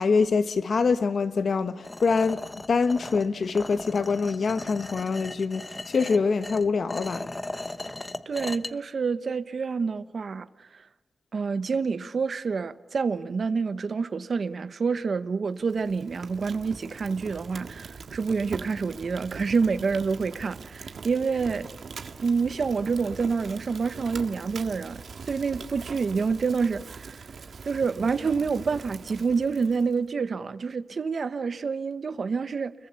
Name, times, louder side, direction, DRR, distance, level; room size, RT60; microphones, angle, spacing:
voice 1, 0.0-2.4 2.7-7.3, left 4 dB, 65° left, 1.2 m, -25 dB
sound 1, 1.8-8.7, left 2 dB, 25° left, 1.0 m, -37 dB
voice 2, 8.3-10.9 11.3-21.7 22.2-27.3 27.6-32.7, right 5 dB, 65° right, 1.0 m, -28 dB
Fire, 15.6-30.0, right 5 dB, 80° right, 1.7 m, -42 dB
29.5 x 22.0 x 7.0 m
wide cardioid pair, 110°, 0 cm